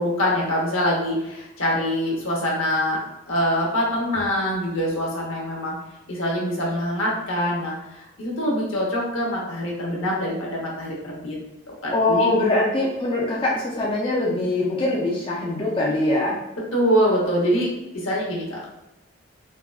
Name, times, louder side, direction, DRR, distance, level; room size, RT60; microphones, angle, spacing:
voice 1, 0.0-5.8 6.1-11.4 11.7-12.3 16.7-18.7, equal, 85° left, -3 dB, 0.9 m, -24 dB
voice 2, 11.9-16.4, left 2 dB, 25° left, -4 dB, 0.4 m, -22 dB
3.5 x 2.2 x 2.3 m, 0.93 s
head